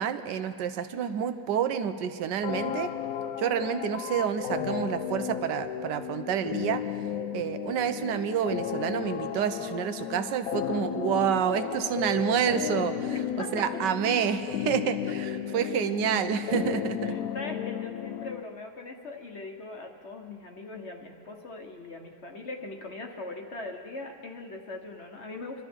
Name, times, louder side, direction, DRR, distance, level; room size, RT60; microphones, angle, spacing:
voice 1, 0.0-2.9 3.4-6.8 7.3-13.1 13.5-17.2, right 8 dB, 85° right, 10 dB, 1.4 m, -28 dB
sound 1, 2.4-18.4, left 10 dB, 70° left, 0.9 m, -34 dB
voice 2, 13.1-13.7 15.6-15.7 17.0-25.6, left 2 dB, 45° left, 3 dB, 1.2 m, -40 dB
25.5 x 12.5 x 4.4 m, 2.5 s
omnidirectional pair, 1.9 m